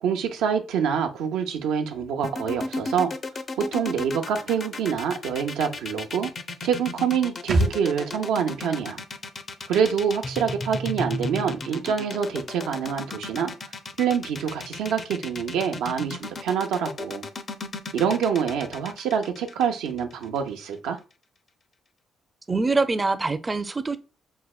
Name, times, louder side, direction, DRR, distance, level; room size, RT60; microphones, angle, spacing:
voice 1, 0.0-3.1 3.6-6.3 6.6-9.0 9.7-13.5 14.0-17.3 17.9-21.0, right 7 dB, 90° right, 0.6 m, -26 dB
sound 1, 2.2-20.4, left 3 dB, 45° left, 0.4 m, -34 dB
sound 2, 7.5-11.0 11.3-11.4, right 1 dB, 55° right, 0.8 m, -31 dB
voice 2, 22.5-24.0, right 3 dB, 25° right, 0.4 m, -24 dB
5.5 x 2.1 x 2.3 m
cardioid pair, 90°, 0 cm